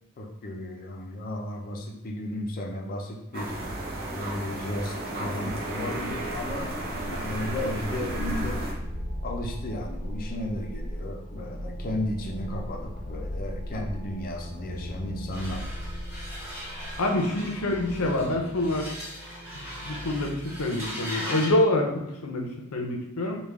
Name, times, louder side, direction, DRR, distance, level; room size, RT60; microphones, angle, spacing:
voice 1, 0.2-3.5 4.1-8.7 9.2-15.6, left 1 dB, 40° left, 1 dB, 0.5 m, -34 dB
sound 1, 3.3-8.7, right 1 dB, 45° right, 0.7 m, -34 dB
sound 2, 6.1-21.7, equal, 85° right, 1.0 m, -37 dB
sound 3, 15.3-21.6, equal, 10° right, 1.3 m, -39 dB
voice 2, 17.0-18.9 19.6-23.4, left 1 dB, 90° left, 1 dB, 0.7 m, -26 dB
3.4 x 2.3 x 3.4 m, 0.89 s
head